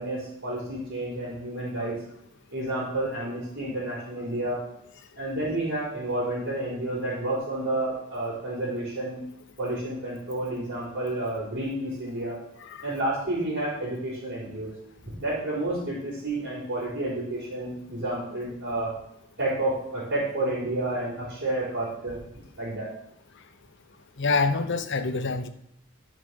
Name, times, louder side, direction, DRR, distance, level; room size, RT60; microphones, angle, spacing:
voice 1, 0.0-1.9 2.5-4.6 5.2-9.2 9.6-12.4 12.8-14.7 15.2-18.9 19.4-22.2 22.6-22.9, right 1 dB, 50° right, -10 dB, 4.3 m, -30 dB
voice 2, 24.2-25.5, left 4 dB, 60° left, 8 dB, 0.9 m, -26 dB
12.5 x 5.0 x 6.4 m, 0.75 s
head